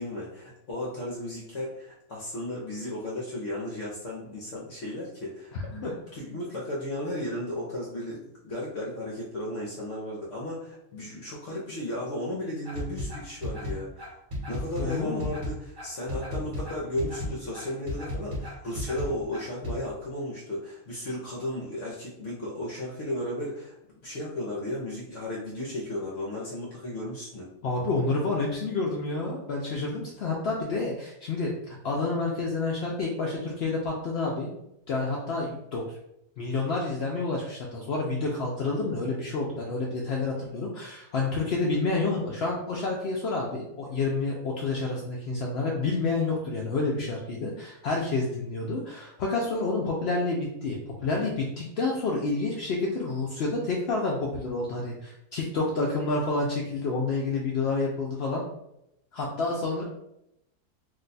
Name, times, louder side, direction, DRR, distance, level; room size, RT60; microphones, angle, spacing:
voice 1, 0.0-14.1 14.5-23.7 24.0-27.5, left 1 dB, 60° left, -4 dB, 0.9 m, -34 dB
voice 2, 5.5-5.9 14.8-15.3 27.6-34.5 34.9-35.8 36.4-58.4 59.1-59.8, left 3 dB, 85° left, -2 dB, 0.5 m, -29 dB
sound 1, 12.6-19.8, left 1 dB, 35° right, 1.0 m, -34 dB
2.7 x 2.2 x 3.9 m, 0.83 s
omnidirectional pair, 1.6 m